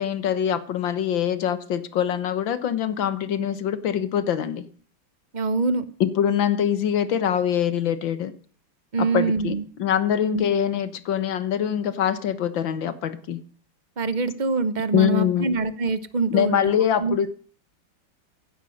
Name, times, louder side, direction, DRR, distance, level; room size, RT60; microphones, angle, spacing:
voice 1, 0.0-4.7 6.0-8.3 9.0-13.4 14.9-15.5 16.3-17.3, left 9 dB, 75° left, 2.0 m, -24 dB
voice 2, 5.3-5.8 8.9-9.6 10.3-10.4 14.0-16.7 17.0-17.3, right 4 dB, 30° right, 0.9 m, -24 dB
15.5 x 11.0 x 6.5 m
omnidirectional pair, 2.1 m